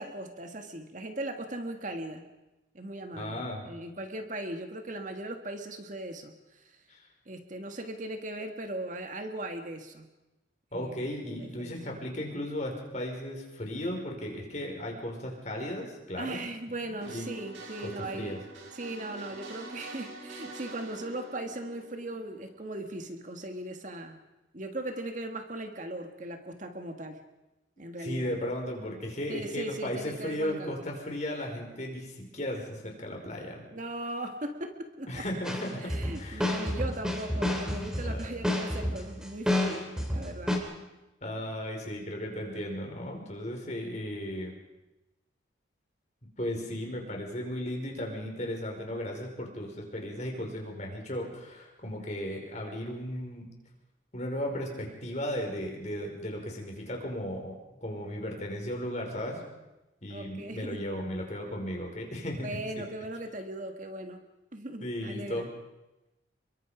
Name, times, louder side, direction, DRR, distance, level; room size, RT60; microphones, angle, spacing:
voice 1, 0.0-2.2 2.7-6.8 7.3-10.1 10.7-11.8 16.1-18.4 18.7-24.2 24.5-27.2 27.8-28.3 29.3-30.8 33.7-35.2 35.8-40.6 60.1-60.8 62.4-64.2 64.5-65.5, right 1 dB, 40° right, 5 dB, 1.8 m, -38 dB
voice 2, 3.2-3.7 6.9-7.0 10.7-16.5 16.8-17.3 17.8-18.4 28.0-33.6 35.1-35.9 36.2-36.5 38.0-38.4 41.2-44.5 46.4-53.5 54.1-57.6 57.8-59.4 60.0-62.5 62.8-62.9 64.8-65.5, equal, 35° left, 1 dB, 5.3 m, -35 dB
sound 1, 17.0-22.7, right 2 dB, 75° right, 5.6 m, -46 dB
sound 2, 35.4-40.6, left 1 dB, 5° right, 3.2 m, -30 dB
28.5 x 23.0 x 5.1 m, 1.0 s
head